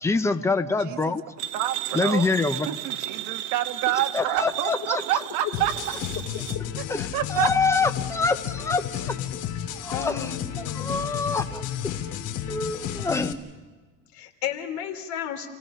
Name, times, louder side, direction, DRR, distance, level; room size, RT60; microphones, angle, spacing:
voice 1, 0.0-1.2 1.9-2.7 4.1-5.0 6.9-9.1 9.7-10.4 10.7-11.9 12.5-13.4, left 4 dB, 10° left, 8 dB, 0.8 m, -26 dB
voice 2, 0.8-1.2 1.5-1.7 2.0-2.3 2.7-5.7 6.8-6.9 7.1-7.5, right 12 dB, 55° right, 6 dB, 1.4 m, -27 dB
sound 1, 1.4-6.6, right 14 dB, 90° right, 1.0 m, -34 dB
sound 2, 5.5-13.3, left 10 dB, 70° left, 2.3 m, -32 dB
voice 3, 9.9-11.0 14.1-15.5, left 9 dB, 55° left, 5 dB, 3.1 m, -33 dB
29.0 x 17.5 x 5.7 m, 1.3 s
cardioid pair, 150°, 35 cm